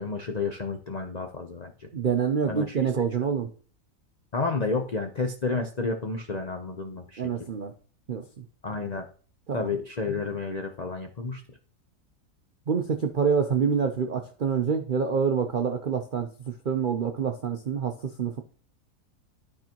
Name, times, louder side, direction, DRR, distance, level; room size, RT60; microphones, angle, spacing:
voice 1, 0.0-1.9 2.5-2.8 4.3-7.2 8.6-9.1 9.5-11.4, left 4 dB, 80° left, 5 dB, 0.3 m, -31 dB
voice 2, 1.9-3.5 7.2-7.7 8.1-8.4 9.5-9.7 12.7-18.4, right 6 dB, 75° right, 5 dB, 0.4 m, -27 dB
12.0 x 4.8 x 2.9 m, 0.41 s
omnidirectional pair, 1.8 m